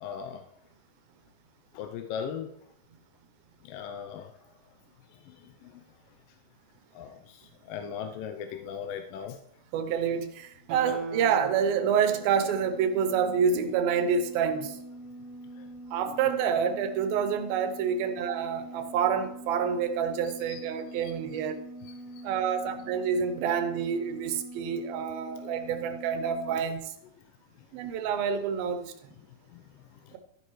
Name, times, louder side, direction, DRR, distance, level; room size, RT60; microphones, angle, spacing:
voice 1, 0.0-0.4 1.7-2.5 3.6-4.3 5.1-5.8 6.9-9.4 15.6-15.7 16.1-16.2 20.3-20.6 20.9-21.4 21.8-22.2 29.5-29.6 29.9-30.2, left 7 dB, 80° left, 5 dB, 2.3 m, -39 dB
voice 2, 9.7-14.8 15.9-21.6 22.2-26.9 27.7-28.9 30.1-30.2, right 7 dB, 90° right, 9 dB, 2.7 m, -28 dB
sound 1, 10.4-26.5, right 1 dB, 50° left, 3.4 m, -45 dB
Guitar, 10.7-13.9 14.3-14.4, right 2 dB, 55° right, 2.4 m, -40 dB
12.0 x 10.0 x 3.1 m, 0.76 s
omnidirectional pair, 4.1 m